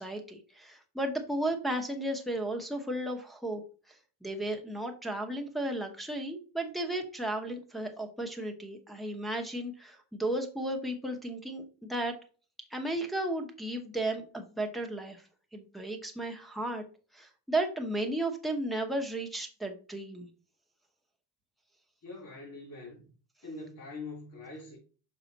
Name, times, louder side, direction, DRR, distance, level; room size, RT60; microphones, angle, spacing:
voice 1, 0.0-3.6 3.9-12.1 12.7-15.3 15.5-16.8 17.1-20.3, right 1 dB, ahead, 0.9 m, -34 dB
voice 2, 22.0-23.0 23.4-24.8, left 3 dB, 45° left, 2.9 m, -43 dB
5.9 x 5.5 x 4.0 m
cardioid pair, 180°, 41 cm